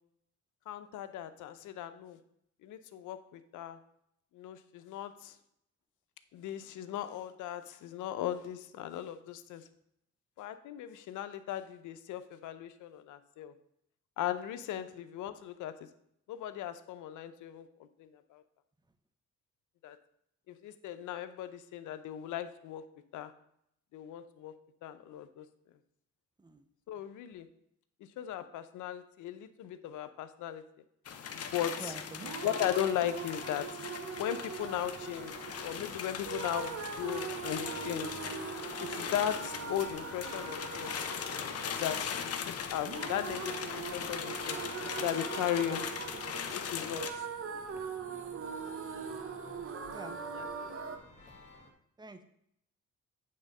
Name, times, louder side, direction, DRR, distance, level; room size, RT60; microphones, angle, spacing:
voice 1, 0.7-2.2 2.6-3.8 4.3-5.3 6.3-9.7 10.4-13.5 14.2-15.7 16.3-17.7 18.0-18.4 19.8-20.0 20.5-22.8 23.1-23.3 23.9-24.5 24.8-25.4 26.9-27.5 28.2-30.6 31.3-31.9 32.4-33.7 34.2-35.3 35.6-38.2 38.8-40.9 41.8-44.6 45.0-45.8 46.5-47.1 47.5-47.8 49.4-49.7 50.3-50.8, left 11 dB, 80° left, 11 dB, 0.7 m, -37 dB
sound 1, 31.0-47.1, left 7 dB, 55° left, 0.8 m, -40 dB
voice 2, 31.8-32.5 42.6-42.7 45.7-45.8 46.7-46.9 49.9-50.2 52.0-52.2, right 3 dB, 15° right, 9 dB, 0.8 m, -47 dB
sound 2, 32.2-51.0, right 6 dB, 45° right, 0.9 m, -42 dB
sound 3, 34.7-51.7, left 2 dB, 25° left, 1.7 m, -55 dB
8.7 x 3.6 x 5.4 m, 0.72 s
cardioid pair, 90°, 30 cm